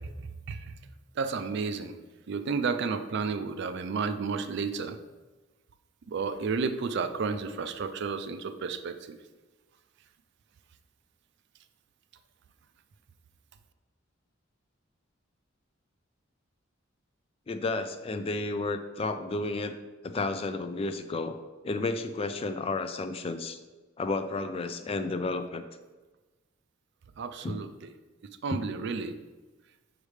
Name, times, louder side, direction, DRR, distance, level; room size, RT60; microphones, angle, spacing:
voice 1, 1.2-2.0 2.3-5.0 6.1-9.0 27.2-27.9 28.4-29.2, right 5 dB, 55° right, 10 dB, 0.4 m, -32 dB
voice 2, 17.5-19.8 20.0-21.4 21.6-23.6 24.0-25.6 27.4-27.6 28.5-28.6, left 3 dB, 30° left, 9 dB, 0.3 m, -32 dB
6.3 x 4.9 x 3.2 m, 1.2 s
head